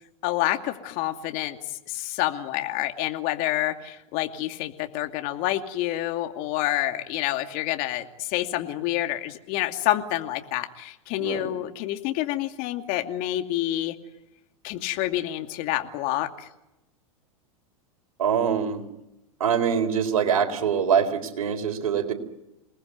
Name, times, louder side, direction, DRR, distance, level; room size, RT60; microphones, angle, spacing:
voice 1, 0.2-14.0 14.6-16.5, left 15 dB, 50° left, 6 dB, 2.5 m, -28 dB
voice 2, 11.2-11.5 18.2-18.8 19.4-22.1, right 7 dB, 80° right, 6 dB, 4.0 m, -24 dB
29.0 x 19.5 x 9.5 m, 0.94 s
hypercardioid pair, 100°, 18 cm